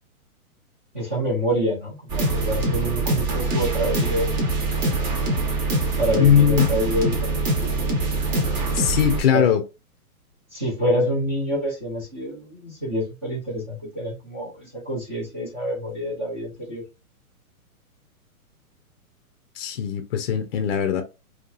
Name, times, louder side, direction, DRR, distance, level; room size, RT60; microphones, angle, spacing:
voice 1, 0.9-4.4 6.0-7.5 9.3-9.4 10.5-16.8, equal, 10° right, 0.4 m, -27 dB
sound 1, 2.1-9.2, right 2 dB, 30° right, 0.8 m, -24 dB
voice 2, 6.2-6.7 8.7-9.6 19.6-21.0, left 8 dB, 45° left, 0.5 m, -20 dB
2.7 x 2.3 x 2.3 m
hypercardioid pair, 145°, 44 cm